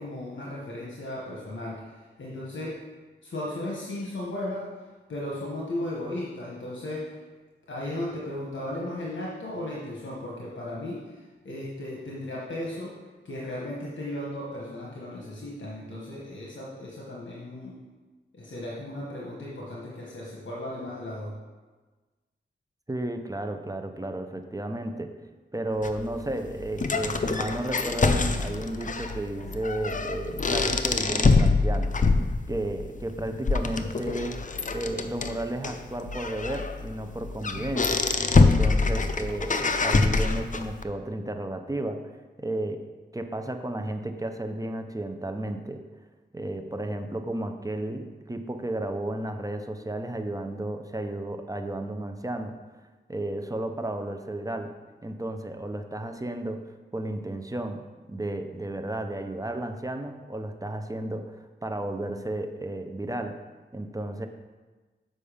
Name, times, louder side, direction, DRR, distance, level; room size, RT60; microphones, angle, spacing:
voice 1, 0.0-2.8 3.2-4.7 5.1-7.1 7.7-11.2 11.4-13.0 13.2-17.8 18.3-21.3, left 1 dB, 70° left, -4 dB, 1.2 m, -35 dB
voice 2, 22.9-25.1 25.5-31.9 32.5-34.4 34.7-38.0 38.3-42.0 42.4-42.8 43.1-45.8 46.3-52.6 53.1-54.7 55.0-63.4 63.7-64.3, right 1 dB, 15° right, 6 dB, 0.6 m, -33 dB
sound 1, 25.8-40.8, left 3 dB, 40° left, 0.5 m, -25 dB
7.0 x 5.2 x 5.0 m, 1.3 s
wide cardioid pair, 75°, 20 cm